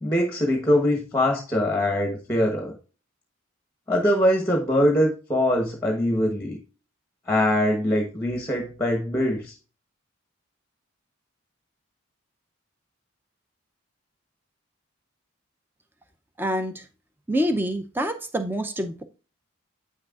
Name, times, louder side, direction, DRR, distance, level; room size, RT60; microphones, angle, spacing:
voice 1, 0.0-2.7 3.9-6.6 7.3-9.5, left 1 dB, 10° left, 2 dB, 1.1 m, -23 dB
voice 2, 16.4-16.7 17.3-19.0, equal, 10° right, 7 dB, 0.5 m, -26 dB
8.3 x 6.4 x 2.4 m, 0.35 s
head